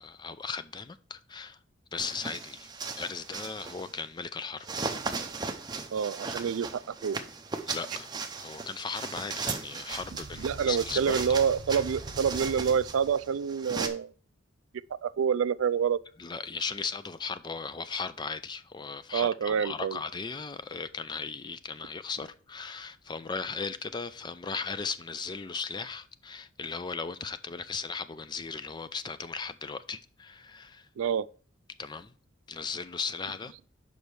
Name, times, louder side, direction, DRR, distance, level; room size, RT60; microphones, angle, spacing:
voice 1, 0.0-1.6 1.9-2.7 3.0-4.9 7.7-8.1 8.4-11.4 16.2-30.9 31.8-32.1 32.5-33.5, left 5 dB, 20° left, 0.4 m, -37 dB
sound 1, 2.0-4.0 4.6-13.9, right 4 dB, 20° right, 0.6 m, -37 dB
voice 2, 5.9-7.2 10.4-14.1 15.0-16.0 19.1-20.0 31.0-31.3, right 7 dB, 80° right, 0.3 m, -27 dB
sound 2, 9.8-13.6, right 2 dB, 60° right, 0.8 m, -44 dB
5.4 x 5.1 x 6.1 m
head